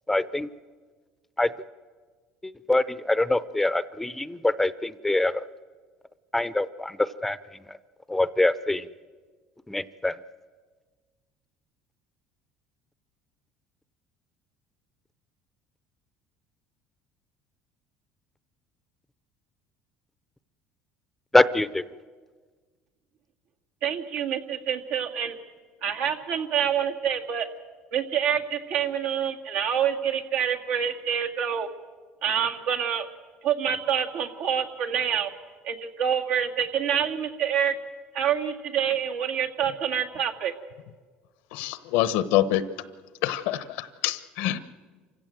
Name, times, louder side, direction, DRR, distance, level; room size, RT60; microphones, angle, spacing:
voice 1, 0.1-0.5 1.4-1.5 2.4-5.4 6.3-7.4 7.7-7.8 8.1-8.9 9.7-10.2 21.3-21.8, left 2 dB, 5° left, 16 dB, 0.6 m, -24 dB
voice 2, 23.8-25.4 25.8-27.5 27.9-31.7 32.2-33.1 33.4-35.3 35.6-37.7 38.1-40.5, right 8 dB, 80° right, 1 dB, 2.1 m, -27 dB
voice 3, 41.5-42.6 43.2-44.6, left 13 dB, 85° left, 14 dB, 1.0 m, -26 dB
27.5 x 16.0 x 7.7 m, 1.5 s
cardioid pair, 115°, 3 cm